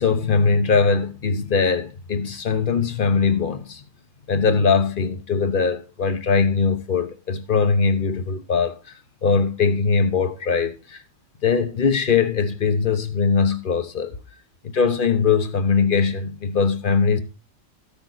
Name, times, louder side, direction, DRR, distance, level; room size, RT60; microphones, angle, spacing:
voice 1, 0.0-3.8 4.3-8.8 9.2-11.0 11.4-14.1 14.7-17.2, left 5 dB, 45° left, 1.1 m, -21 dB
14.0 x 7.0 x 4.0 m
omnidirectional pair, 1.3 m